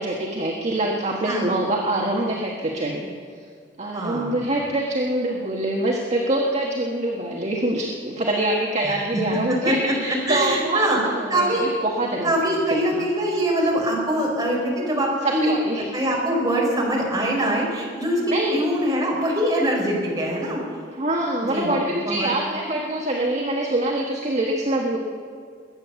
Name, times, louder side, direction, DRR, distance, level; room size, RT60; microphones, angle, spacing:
voice 1, 0.0-3.1 3.8-10.8 11.2-12.3 12.9-13.0 15.2-15.8 18.3-18.7 21.0-25.0, right 1 dB, 35° right, -2 dB, 1.5 m, -25 dB
voice 2, 3.9-4.5 8.8-9.8 10.1-11.0 11.3-11.6 12.0-15.5 15.9-20.6 21.5-21.7 22.0-22.3, right 1 dB, 20° right, -3 dB, 4.7 m, -23 dB
21.5 x 9.2 x 7.1 m, 2.1 s
head